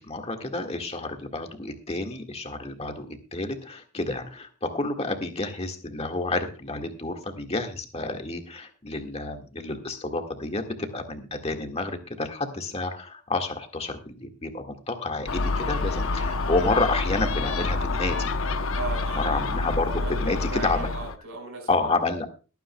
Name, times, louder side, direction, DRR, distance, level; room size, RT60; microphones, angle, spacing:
voice 1, 0.0-18.3 19.1-20.9 21.7-22.3, left 2 dB, 30° left, 4 dB, 1.7 m, -30 dB
Gull seagull, 15.3-21.2, left 3 dB, 70° left, 0.8 m, -27 dB
voice 2, 15.5-16.3 18.7-19.5 19.9-21.9, right 3 dB, 80° right, 4 dB, 4.6 m, -38 dB
22.5 x 9.2 x 2.3 m, 0.34 s
head